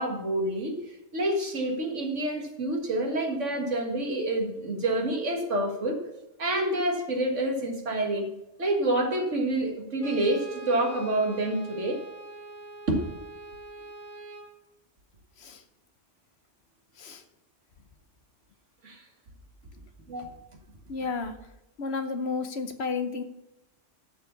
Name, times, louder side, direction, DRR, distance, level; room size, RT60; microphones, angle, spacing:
voice 1, 0.0-6.0 6.4-8.3 8.6-12.0 12.9-13.0 18.8-19.0 20.1-20.3, right 1 dB, 85° right, 2 dB, 2.0 m, -28 dB
Brass instrument, 10.0-14.6, right 2 dB, 30° right, 1.0 m, -43 dB
voice 2, 20.9-21.4 21.8-23.2, left 4 dB, 65° left, 8 dB, 1.1 m, -31 dB
12.5 x 4.8 x 6.9 m, 0.90 s
omnidirectional pair, 1.2 m